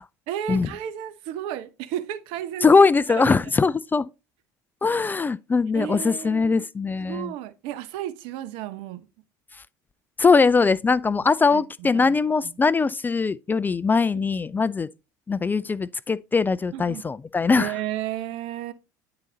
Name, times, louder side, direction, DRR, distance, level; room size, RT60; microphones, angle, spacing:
voice 1, 0.3-2.7 3.1-3.4 4.9-5.0 5.7-6.7 7.0-9.1 11.5-12.2 12.4-12.6 14.1-14.3 16.7-17.0 17.5-18.7, right 11 dB, 65° right, 0.9 m, -33 dB
voice 2, 2.6-4.1 4.8-7.3 10.2-14.9 15.3-17.7, left 4 dB, 20° left, 0.3 m, -21 dB
9.8 x 3.9 x 3.9 m
hypercardioid pair, 75°, 10 cm